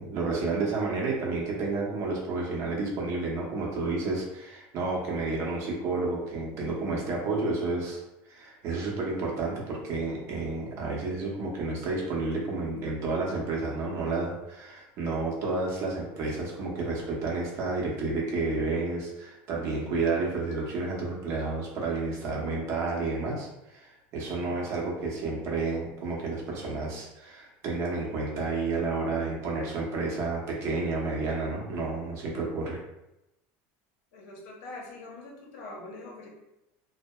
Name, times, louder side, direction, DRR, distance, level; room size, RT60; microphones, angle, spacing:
voice 1, 0.0-8.0 8.3-32.8, right 3 dB, 50° right, -2 dB, 0.7 m, -31 dB
voice 2, 34.1-36.3, left 2 dB, 80° left, -1 dB, 0.7 m, -44 dB
2.7 x 2.0 x 2.2 m, 0.91 s
supercardioid pair, 140°, 7 cm